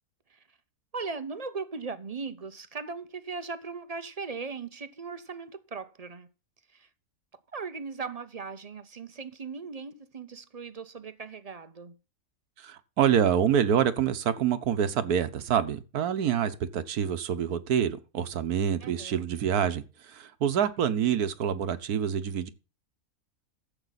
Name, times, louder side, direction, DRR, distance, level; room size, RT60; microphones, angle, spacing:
voice 1, 0.9-6.3 6.7-6.9 7.5-12.0 18.8-19.3, right 4 dB, 35° right, 0.6 m, -38 dB
voice 2, 12.6-22.5, right 8 dB, 80° right, 1.5 m, -26 dB
14.0 x 7.8 x 4.1 m
omnidirectional pair, 1.6 m